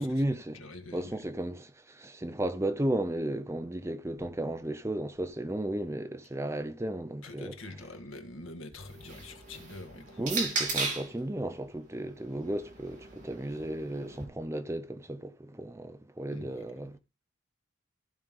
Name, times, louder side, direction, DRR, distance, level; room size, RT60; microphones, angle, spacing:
voice 1, 0.0-0.6 0.9-7.6 10.2-17.0, right 1 dB, 15° right, 0.5 m, -34 dB
voice 2, 0.5-1.1 7.2-10.4 16.3-16.7, left 2 dB, 85° left, 1.6 m, -45 dB
sound 1, 8.7-11.2 12.1-14.2, right 3 dB, 40° right, 3.1 m, -36 dB
14.5 x 5.3 x 3.7 m
head